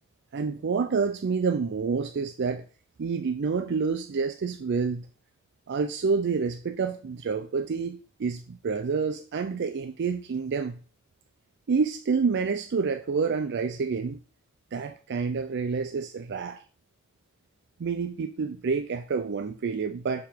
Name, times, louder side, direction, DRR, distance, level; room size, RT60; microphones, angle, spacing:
voice 1, 0.3-2.6 3.0-5.1 5.7-10.8 11.7-14.2 14.7-16.6 17.8-20.3, right 5 dB, 55° right, 0.4 m, -28 dB
6.7 x 3.7 x 4.5 m
head